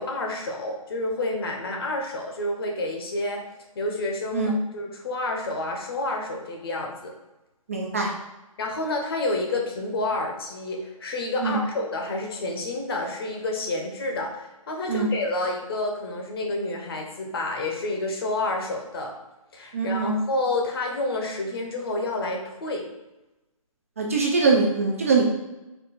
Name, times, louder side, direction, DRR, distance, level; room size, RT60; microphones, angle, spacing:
voice 1, 0.0-3.4 3.8-7.1 8.6-19.1 19.5-22.8, left 2 dB, 40° left, 1 dB, 0.8 m, -29 dB
voice 2, 7.7-8.1 11.4-11.6 14.9-15.1 19.7-20.2 24.0-25.2, right 4 dB, 25° right, -1 dB, 0.3 m, -22 dB
4.4 x 2.4 x 4.0 m, 1.0 s
hypercardioid pair, 160°, 18 cm